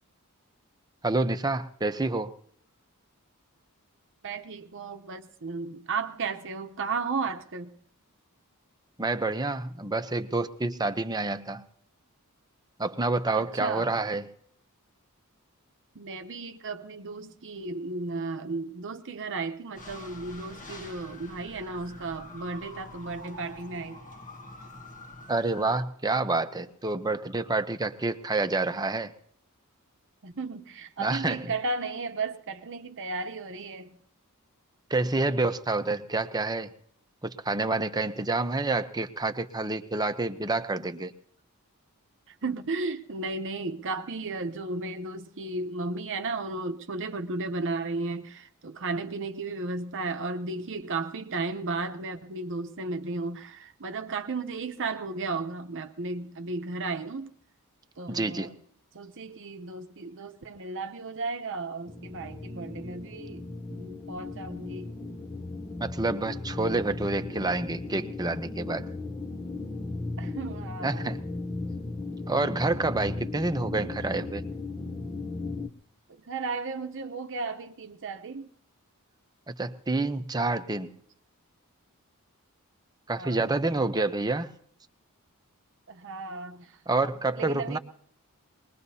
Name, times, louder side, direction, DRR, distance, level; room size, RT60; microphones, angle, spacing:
voice 1, 1.0-2.3 9.0-11.6 12.8-14.3 25.3-29.1 31.0-31.5 34.9-36.7 37.2-41.1 58.1-58.5 65.8-68.9 70.8-71.2 72.3-74.4 79.5-80.9 83.1-84.5 86.9-87.8, right 2 dB, 20° right, 0.8 m, -28 dB
voice 2, 4.2-7.7 13.3-13.9 15.9-24.0 30.2-33.9 42.3-57.3 58.0-58.5 58.9-64.9 70.2-71.1 76.1-78.5 83.2-83.5 85.9-87.8, right 3 dB, 60° right, 0.8 m, -34 dB
sound 1, 19.8-25.8, left 2 dB, 35° left, 1.1 m, -46 dB
sound 2, 61.9-75.7, left 2 dB, 15° left, 0.7 m, -36 dB
23.5 x 20.5 x 2.8 m
head